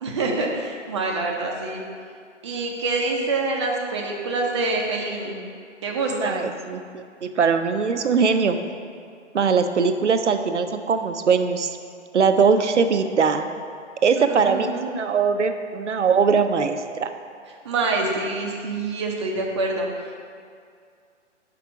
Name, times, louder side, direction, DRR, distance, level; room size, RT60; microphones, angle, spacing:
voice 1, 0.0-1.8 2.4-5.4 5.8-6.4 14.2-14.9 17.6-19.9, right 3 dB, 25° right, -1 dB, 0.6 m, -26 dB
voice 2, 6.1-8.6 9.3-11.7 12.1-13.4 14.0-17.1, right 5 dB, 70° right, 8 dB, 0.6 m, -21 dB
6.1 x 4.9 x 4.6 m, 2.2 s
figure-of-eight pair, 130°, 37 cm